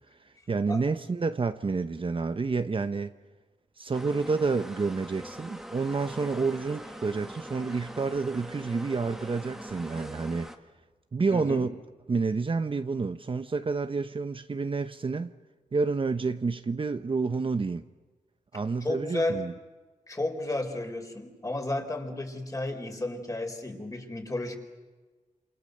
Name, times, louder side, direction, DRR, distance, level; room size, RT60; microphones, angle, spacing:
voice 1, 0.5-3.1 3.8-10.5 11.1-11.7 12.1-15.3 15.7-17.8 18.5-19.5, right 4 dB, 40° right, 0.9 m, -29 dB
sound 1, 3.9-10.6, equal, 5° right, 1.7 m, -43 dB
voice 2, 11.3-11.7 18.5-19.4 20.1-24.6, left 2 dB, 25° left, 4.4 m, -32 dB
28.5 x 28.5 x 6.7 m
wide cardioid pair, 115°, 14 cm